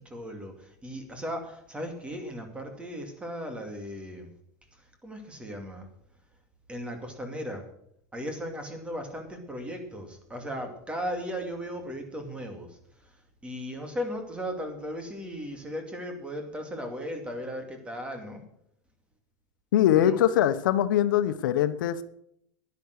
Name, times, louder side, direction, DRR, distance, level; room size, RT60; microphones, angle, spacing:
voice 1, 0.1-0.5 0.8-4.3 5.0-5.8 6.7-7.6 8.1-12.7 13.4-18.4 20.0-20.1, equal, 10° right, 5 dB, 2.4 m, -36 dB
voice 2, 19.7-22.0, left 11 dB, 90° left, 11 dB, 1.0 m, -22 dB
11.0 x 11.0 x 6.5 m, 0.70 s
supercardioid pair, 145°, 10 cm